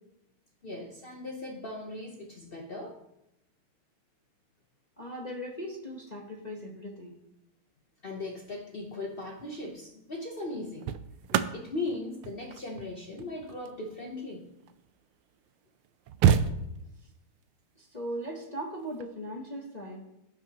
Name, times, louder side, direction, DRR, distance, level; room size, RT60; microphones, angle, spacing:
voice 1, 0.6-3.0 8.0-10.9 11.3-14.5, left 2 dB, 75° left, 1 dB, 0.5 m, -38 dB
voice 2, 5.0-7.2 16.2-16.5 17.8-20.0, equal, 35° left, -1 dB, 0.7 m, -39 dB
sound 1, 9.2-9.5 10.4-15.0 15.6-15.7 15.8-17.1 18.8-19.0, right 8 dB, 80° right, 1.5 m, -30 dB
17.0 x 6.2 x 2.9 m, 0.86 s
omnidirectional pair, 2.4 m